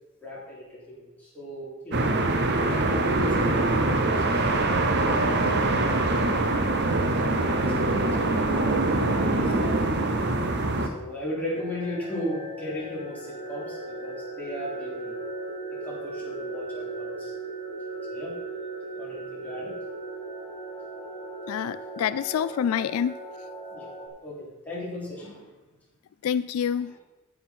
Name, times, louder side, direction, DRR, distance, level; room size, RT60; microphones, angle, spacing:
voice 1, 0.2-2.1 2.7-6.1 6.8-8.4 9.1-10.4 10.8-15.2 15.7-17.3 18.1-18.3 19.0-19.8 21.5-21.9 23.7-23.9 24.2-25.6 26.8-27.0, equal, 10° left, -7 dB, 3.5 m, -37 dB
sound 1, 1.9-10.9, right 2 dB, 50° right, 0.9 m, -24 dB
sound 2, 11.5-24.1, right 2 dB, 35° left, 1.5 m, -37 dB
voice 2, 21.5-23.1 26.2-26.9, left 8 dB, 80° left, 16 dB, 0.3 m, -27 dB
9.7 x 8.3 x 4.5 m, 1.1 s
head